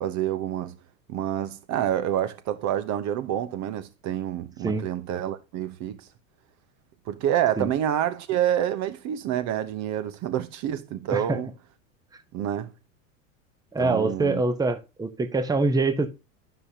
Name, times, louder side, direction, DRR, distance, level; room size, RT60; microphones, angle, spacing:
voice 1, 0.0-0.7 1.1-6.0 7.1-11.5 12.3-12.7 13.8-14.4, right 11 dB, 45° right, 1.0 m, -27 dB
voice 2, 13.7-16.1, right 3 dB, 10° right, 1.0 m, -24 dB
12.0 x 5.6 x 2.8 m
hypercardioid pair, 105°, 41 cm